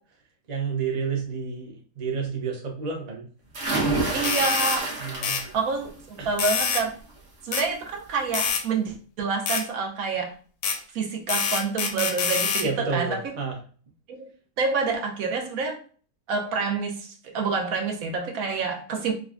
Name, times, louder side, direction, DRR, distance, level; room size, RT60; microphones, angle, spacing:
voice 1, 0.5-3.3 3.8-4.3 5.0-5.4 6.2-6.3 12.6-13.6, right 5 dB, 40° right, 0.6 m, -30 dB
sound 1, 3.5-5.6 6.0-6.5 7.9-8.0 8.3-8.4, right 2 dB, 55° right, 1.4 m, -28 dB
voice 2, 4.1-4.9 5.5-6.9 7.4-10.3 10.9-13.2 14.1-14.3 14.6-15.8 16.3-19.1, right 4 dB, 70° right, 1.0 m, -27 dB
sound 2, 4.2-4.8 5.2-5.4 6.4-6.9 7.5-7.7 8.3-8.6 9.5-9.6 10.6-10.8 11.3-12.7, left 6 dB, 80° left, 1.1 m, -26 dB
5.0 x 2.2 x 2.4 m
omnidirectional pair, 1.6 m